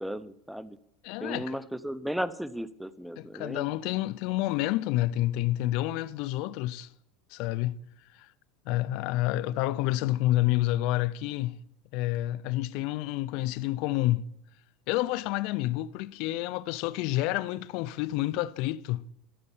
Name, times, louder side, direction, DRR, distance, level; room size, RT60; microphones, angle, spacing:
voice 1, 0.0-0.8 1.2-3.7, equal, ahead, 0.6 m, -35 dB
voice 2, 1.0-1.6 3.2-6.9 7.3-7.8 8.1-8.3 8.7-11.6 11.9-14.2 14.9-19.0, left 16 dB, 65° left, 0.4 m, -29 dB
12.0 x 6.6 x 7.2 m
supercardioid pair, 110°, 0 cm